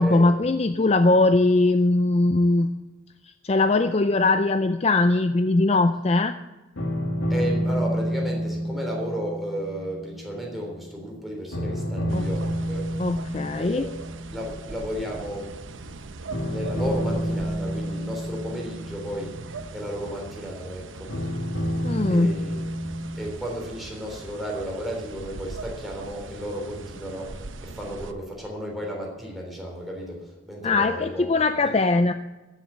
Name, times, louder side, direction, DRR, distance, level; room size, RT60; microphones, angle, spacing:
voice 1, 0.0-2.7 3.4-6.3 12.1-12.3 13.0-13.9 21.8-22.4 30.6-32.1, left 2 dB, 30° left, 10 dB, 0.4 m, -20 dB
sound 1, 6.8-11.1 11.5-14.8 16.3-20.3 21.1-23.3, equal, 90° left, 2.4 m, -29 dB
voice 2, 7.3-12.9 13.5-13.9 14.3-16.0 16.4-19.4 19.7-21.1 22.1-22.9 23.1-31.3 31.6-31.8, equal, ahead, -1 dB, 3.5 m, -33 dB
sound 2, 12.1-28.1, right 3 dB, 80° right, 0.9 m, -41 dB
14.5 x 7.4 x 8.2 m, 1.1 s
head